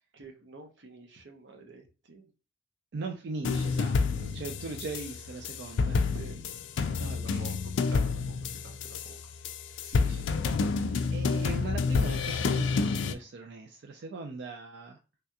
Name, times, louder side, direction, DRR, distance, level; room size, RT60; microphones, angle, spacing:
voice 1, 0.1-2.3 6.1-6.5 6.9-9.3 9.7-9.9, right 3 dB, 90° right, 4 dB, 0.8 m, -49 dB
voice 2, 2.9-6.0 7.0-7.5 9.8-15.0, right 3 dB, 65° right, 3 dB, 0.4 m, -40 dB
sound 1, 3.4-13.1, left 4 dB, 85° left, 0.3 m, -29 dB
3.3 x 2.8 x 2.3 m, 0.32 s
head